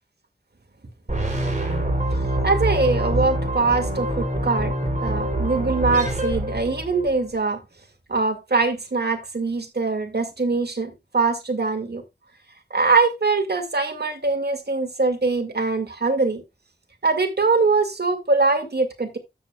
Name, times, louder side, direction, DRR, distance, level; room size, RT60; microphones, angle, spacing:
sound 1, 1.1-7.2, right 1 dB, 45° right, 3.3 m, -25 dB
voice 1, 2.4-4.7 5.0-7.6 8.1-12.0 12.7-16.4 17.0-19.2, right 3 dB, 65° right, 2.0 m, -22 dB
12.5 x 7.7 x 2.3 m
wide cardioid pair, 75°, 18 cm